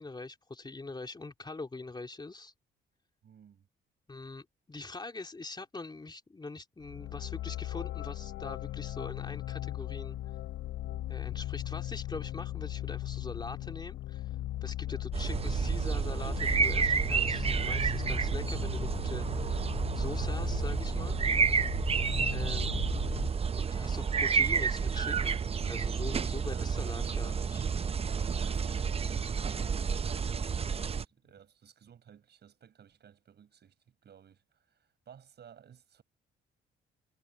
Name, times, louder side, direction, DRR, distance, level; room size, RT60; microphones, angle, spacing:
voice 1, 0.0-2.5 4.1-10.2 11.1-14.4 14.6-21.2 22.3-22.7 23.1-23.2 23.5-25.4 25.7-27.6, left 3 dB, 20° left, 3.4 m, -43 dB
voice 2, 3.2-3.7 14.8-15.1 22.0-22.3 26.5-26.7 28.4-36.0, right 8 dB, 55° right, 7.6 m, -57 dB
sound 1, 6.8-23.3, left 14 dB, 90° left, 3.7 m, -38 dB
sound 2, 15.1-31.1, right 6 dB, 30° right, 0.6 m, -30 dB
cardioid pair, 90°, 20 cm